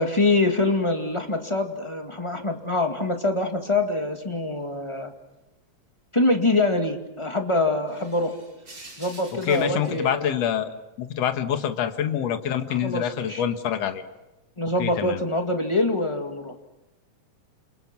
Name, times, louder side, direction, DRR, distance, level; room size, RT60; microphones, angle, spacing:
voice 1, 0.0-5.1 6.1-8.4 9.0-10.4 12.7-13.4 14.6-16.5, left 2 dB, 10° left, 4 dB, 1.7 m, -24 dB
sound 1, 2.3-4.3 4.6-5.6 5.8-5.9 6.3-6.5 7.0-7.1 7.7-11.1 11.5-13.6 14.3-14.5 14.9-15.2, right 2 dB, 35° right, 5.5 m, -49 dB
voice 2, 9.4-10.7 11.0-14.0 14.8-15.2, left 9 dB, 60° left, 7 dB, 2.6 m, -26 dB
29.5 x 28.5 x 6.1 m, 0.96 s
omnidirectional pair, 3.4 m